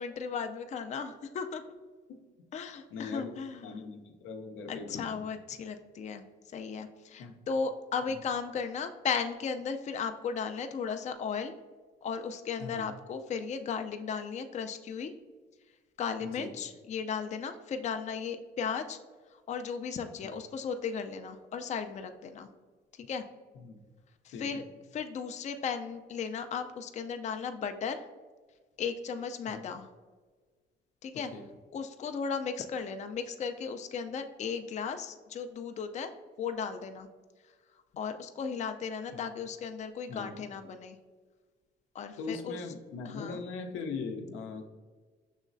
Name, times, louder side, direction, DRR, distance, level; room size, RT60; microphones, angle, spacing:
voice 1, 0.0-1.6 2.5-3.7 4.7-6.2 6.5-11.5 12.0-15.1 16.0-19.0 19.5-22.5 23.0-23.2 24.2-24.6 24.9-28.1 28.8-29.9 31.0-31.3 31.7-36.1 36.4-37.1 38.0-41.0 41.9-42.6 43.1-43.4, left 6 dB, 35° left, 7 dB, 0.4 m, -36 dB
voice 2, 2.9-3.3 3.6-5.2 7.2-7.3 12.6-12.8 16.2-16.5 20.2-20.3 23.6-23.8 24.3-24.6 29.5-29.6 31.3-31.4 40.1-40.4 42.2-44.6, left 4 dB, 90° left, 4 dB, 0.6 m, -40 dB
6.3 x 3.0 x 2.5 m, 1.4 s
cardioid pair, 90°, 20 cm